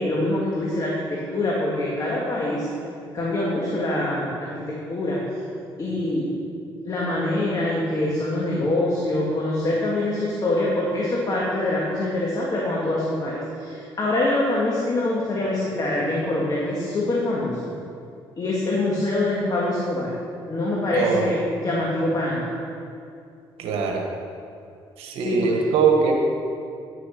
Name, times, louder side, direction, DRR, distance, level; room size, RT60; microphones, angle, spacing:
voice 1, 0.0-2.7 3.1-5.2 5.8-6.3 6.9-17.7 18.4-20.2 20.5-22.6 25.2-25.6, left 1 dB, 40° left, -4 dB, 2.1 m, -24 dB
voice 2, 23.6-24.0 25.0-26.1, right 6 dB, 80° right, 1 dB, 1.3 m, -21 dB
10.5 x 6.5 x 5.8 m, 2.5 s
cardioid pair, 75°, 10 cm